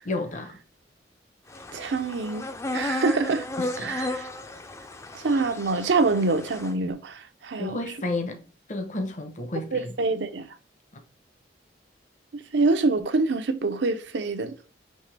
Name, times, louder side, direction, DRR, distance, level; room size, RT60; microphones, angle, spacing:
voice 1, 0.0-0.6 3.6-3.9 7.6-8.4 8.7-9.9 10.9-11.0, left 2 dB, 40° left, 0.7 m, -31 dB
sound 1, 1.5-6.7, left 2 dB, 15° left, 0.4 m, -34 dB
voice 2, 1.7-2.4 2.7-3.5 3.8-4.3 5.1-7.8 9.7-10.5 12.3-14.6, right 3 dB, 85° right, 0.6 m, -25 dB
5.4 x 2.9 x 3.3 m
head